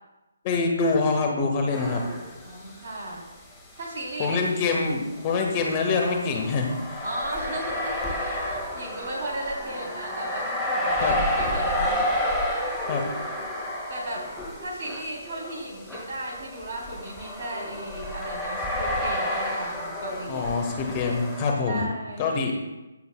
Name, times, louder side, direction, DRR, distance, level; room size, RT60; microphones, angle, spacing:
voice 1, 0.4-2.0 4.2-7.0 11.0-11.1 12.9-13.0 20.3-21.9 22.2-22.6, left 4 dB, 25° left, 2 dB, 1.4 m, -25 dB
sound 1, 1.7-2.8 3.1-3.2 4.3-21.5, left 1 dB, 10° left, 1.9 m, -31 dB
voice 2, 2.4-3.2 3.8-4.4 7.0-12.0 13.9-14.3 14.6-20.5 21.7-22.3, right 1 dB, 45° right, -2 dB, 3.5 m, -35 dB
16.0 x 7.8 x 2.3 m, 1.1 s
figure-of-eight pair, 140°, 0 cm